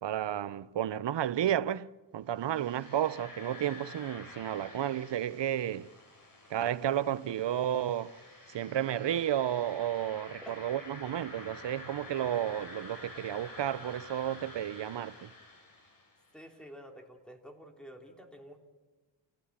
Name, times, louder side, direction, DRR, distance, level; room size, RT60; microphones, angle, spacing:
voice 1, 0.0-5.9 6.5-8.2 8.5-15.3, right 11 dB, 65° right, 0.8 m, -32 dB
sound 1, 2.3-16.3, left 2 dB, 45° left, 8.0 m, -50 dB
voice 2, 16.3-18.6, equal, ahead, 3.5 m, -49 dB
28.5 x 17.0 x 8.8 m
wide cardioid pair, 95°, 47 cm